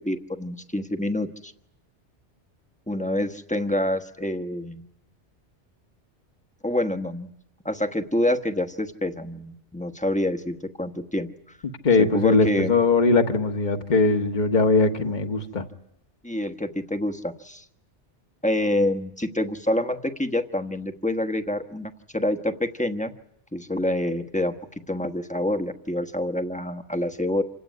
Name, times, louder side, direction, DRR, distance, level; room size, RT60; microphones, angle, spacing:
voice 1, 0.0-1.5 2.9-4.8 6.6-7.3 7.6-11.6 12.0-12.7 16.2-17.6 18.4-23.1 23.5-24.6 24.9-27.4, left 1 dB, 5° left, 7 dB, 1.1 m, -27 dB
voice 2, 11.8-15.6, left 3 dB, 40° left, 5 dB, 1.6 m, -20 dB
27.0 x 17.5 x 9.5 m, 0.79 s
omnidirectional pair, 1.2 m